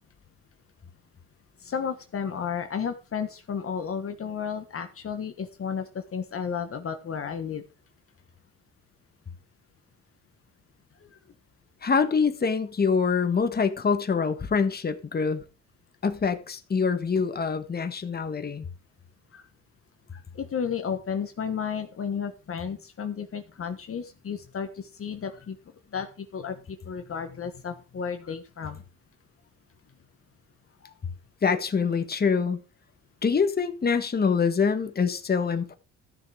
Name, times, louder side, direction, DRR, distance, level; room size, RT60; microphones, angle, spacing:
voice 1, 1.6-7.6 11.0-11.1 19.3-19.4 20.3-25.6 25.9-28.8 30.8-30.9, left 7 dB, 45° left, 1.4 m, -33 dB
voice 2, 11.8-15.4 16.0-18.7 31.4-32.6 33.2-35.7, left 5 dB, 30° left, 1.5 m, -25 dB
13.5 x 6.8 x 4.9 m
cardioid pair, 90°, 30 cm